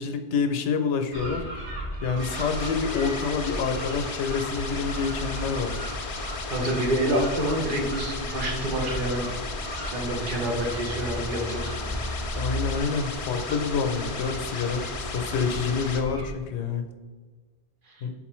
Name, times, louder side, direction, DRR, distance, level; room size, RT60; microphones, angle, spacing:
voice 1, 0.0-1.4 2.0-5.8 6.6-6.7 12.3-16.8 18.0-18.1, left 5 dB, 85° left, 7 dB, 0.9 m, -27 dB
sound 1, 1.1-16.3, equal, 35° right, 1.4 m, -35 dB
sound 2, 2.2-16.0, left 4 dB, 50° left, 0.4 m, -36 dB
voice 2, 6.5-9.3 9.8-12.1 17.9-18.1, right 1 dB, 50° right, 0 dB, 0.9 m, -28 dB
4.3 x 3.8 x 3.0 m, 1.4 s
omnidirectional pair, 1.1 m